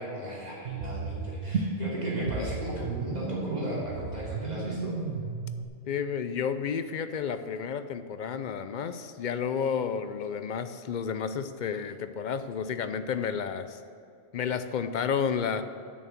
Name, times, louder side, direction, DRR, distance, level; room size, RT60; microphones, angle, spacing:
voice 1, 0.0-5.0, right 1 dB, 40° right, -6 dB, 3.0 m, -36 dB
sound 1, 0.7-5.7, right 4 dB, 85° right, 1.0 m, -33 dB
voice 2, 5.9-13.8 14.3-15.6, left 7 dB, 55° left, 10 dB, 0.6 m, -31 dB
9.1 x 6.5 x 7.2 m, 2.5 s
omnidirectional pair, 1.1 m